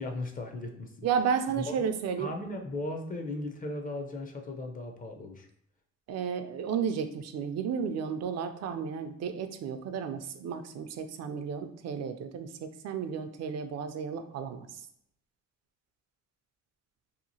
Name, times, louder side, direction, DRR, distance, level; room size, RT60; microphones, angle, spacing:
voice 1, 0.0-1.1 1.6-1.9 2.2-5.5, left 2 dB, 30° left, 3 dB, 0.5 m, -37 dB
voice 2, 1.0-2.3 6.1-14.7, right 7 dB, 60° right, 8 dB, 0.4 m, -33 dB
2.8 x 2.4 x 2.7 m, 0.72 s
cardioid pair, 90°, 30 cm